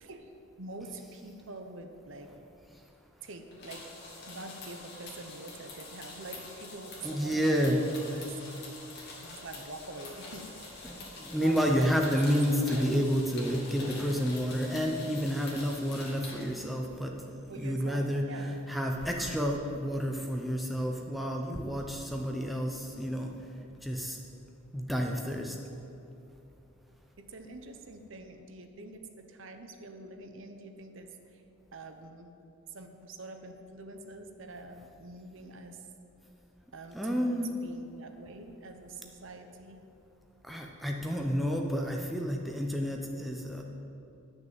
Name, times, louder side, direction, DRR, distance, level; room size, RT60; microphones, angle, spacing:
voice 1, 0.0-2.3 3.2-3.9 4.2-8.4 9.2-11.1 11.3-12.2 12.5-12.9 17.5-18.6 27.2-31.4 31.7-32.3 32.7-35.9 36.7-39.8, right 2 dB, 60° right, 6 dB, 0.8 m, -45 dB
sound 1, 3.5-16.4, left 2 dB, 50° left, 2.2 m, -45 dB
voice 2, 7.0-7.8 10.8-18.3 18.7-23.3 23.8-24.2 24.7-25.6 36.9-37.5 40.5-43.6, equal, ahead, 0 dB, 0.7 m, -30 dB
10.5 x 6.3 x 7.4 m, 2.7 s
head